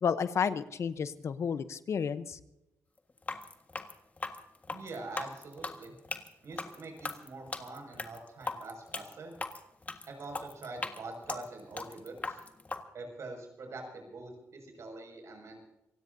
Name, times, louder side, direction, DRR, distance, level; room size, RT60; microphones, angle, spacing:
voice 1, 0.0-2.4, left 6 dB, 55° left, 12 dB, 0.9 m, -31 dB
sound 1, 3.2-12.8, left 3 dB, 25° left, 1.6 m, -39 dB
voice 2, 4.7-5.9 6.4-9.3 10.1-12.4 12.9-15.6, right 2 dB, 60° right, 2 dB, 6.2 m, -44 dB
27.5 x 16.5 x 2.7 m, 0.89 s
cardioid pair, 90°, 6 cm